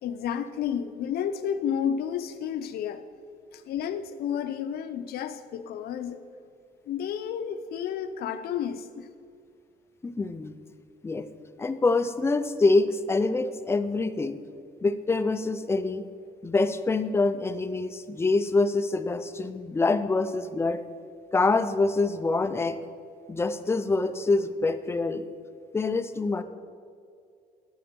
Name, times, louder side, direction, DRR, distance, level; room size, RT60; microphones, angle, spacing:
voice 1, 0.0-3.0 3.5-6.2 6.9-9.1, left 8 dB, 80° left, 10 dB, 0.6 m, -31 dB
voice 2, 10.0-10.5 11.0-11.3 11.6-14.4 14.8-16.0 16.4-20.8 21.3-22.8 23.3-25.2 25.7-26.4, left 3 dB, 15° left, 11 dB, 0.4 m, -25 dB
12.5 x 4.4 x 6.8 m, 2.3 s
cardioid pair, 140°, 16 cm